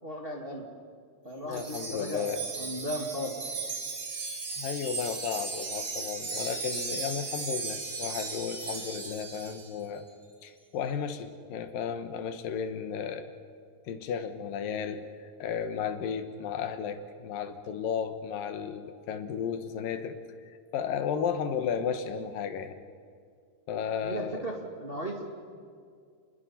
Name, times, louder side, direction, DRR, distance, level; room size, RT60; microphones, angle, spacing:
voice 1, 0.0-0.6 1.2-2.3 2.6-3.3 24.0-25.2, equal, 20° right, 0 dB, 1.8 m, -36 dB
voice 2, 1.4-2.4 4.6-10.1 10.4-13.4 13.8-20.2 20.7-22.8 23.7-24.4, left 7 dB, 85° left, 9 dB, 2.9 m, -34 dB
Wind chime, 1.5-9.7, right 4 dB, 40° right, 3.1 m, -36 dB
30.0 x 21.5 x 5.6 m, 2.1 s
omnidirectional pair, 4.0 m